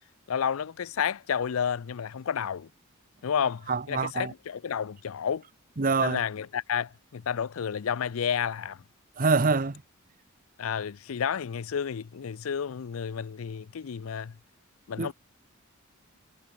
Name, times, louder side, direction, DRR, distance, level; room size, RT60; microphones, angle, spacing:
voice 1, 0.3-2.7 3.2-5.4 6.0-8.8 10.6-14.4 14.9-15.1, left 7 dB, 85° left, 0.5 m, -31 dB
voice 2, 3.7-4.3 5.8-6.2 9.2-9.8 15.0-15.1, right 4 dB, 45° right, 0.9 m, -25 dB
head